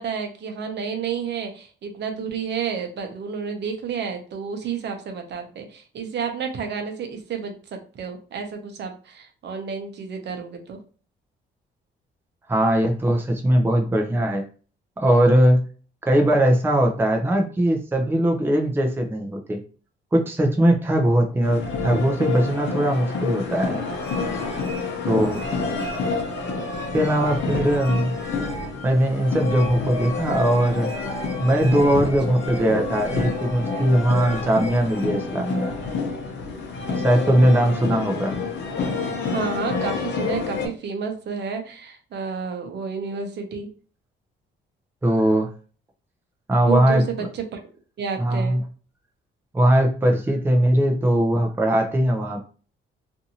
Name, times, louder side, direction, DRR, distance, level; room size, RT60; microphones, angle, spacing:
voice 1, 0.0-10.8 25.0-25.9 32.0-32.1 36.9-37.4 39.3-43.7 46.7-47.6 48.0-48.6, right 6 dB, 60° right, 4 dB, 0.8 m, -31 dB
voice 2, 12.5-14.4 15.0-15.6 16.0-19.6 20.1-23.8 25.1-25.4 26.9-28.1 28.8-30.9 31.4-35.7 37.0-38.4 45.0-45.5 46.5-47.0 48.2-48.6 49.5-52.4, right 1 dB, 10° right, 3 dB, 0.5 m, -20 dB
sound 1, 21.4-40.7, left 4 dB, 65° left, 0.8 m, -28 dB
sound 2, 24.0-35.0, left 1 dB, 15° left, 0.9 m, -39 dB
2.6 x 2.6 x 2.8 m, 0.39 s
cardioid pair, 90°, 20 cm